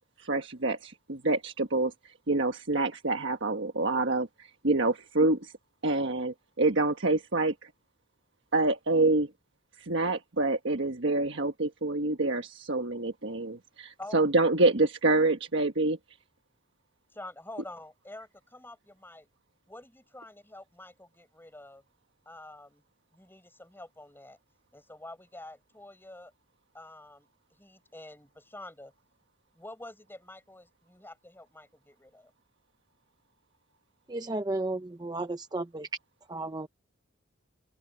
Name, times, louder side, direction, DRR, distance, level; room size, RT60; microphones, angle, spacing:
voice 1, 0.0-5.5 5.8-7.7 8.5-9.3 9.8-16.0, right 2 dB, 65° right, 1.4 m, -27 dB
voice 2, 14.0-14.3 17.1-19.3 19.7-21.8 22.3-22.8 23.1-24.4 24.7-26.3 26.7-27.3 27.6-28.9 29.5-32.3, left 1 dB, 10° left, 5.2 m, -47 dB
voice 3, 34.1-35.9 36.3-36.7, right 2 dB, 20° right, 0.7 m, -33 dB
open air
head